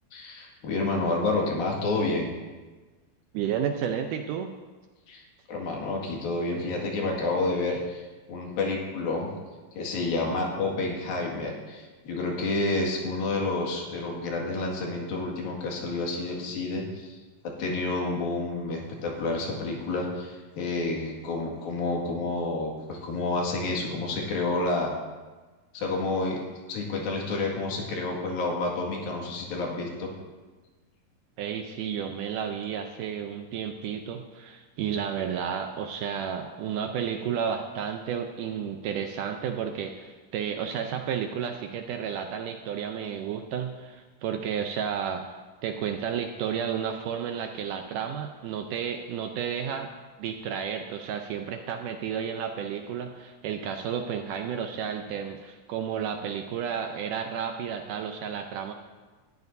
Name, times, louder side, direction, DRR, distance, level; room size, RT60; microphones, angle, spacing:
voice 1, 0.1-2.3 5.1-5.2 5.5-9.3 9.7-17.2 17.4-24.9 25.7-26.4 26.7-30.1, left 2 dB, 75° left, -1 dB, 3.8 m, -29 dB
voice 2, 3.3-4.5 31.4-45.2 45.6-49.9 50.2-58.7, right 8 dB, 75° right, 5 dB, 2.0 m, -32 dB
20.0 x 13.0 x 2.7 m, 1.3 s
omnidirectional pair, 4.2 m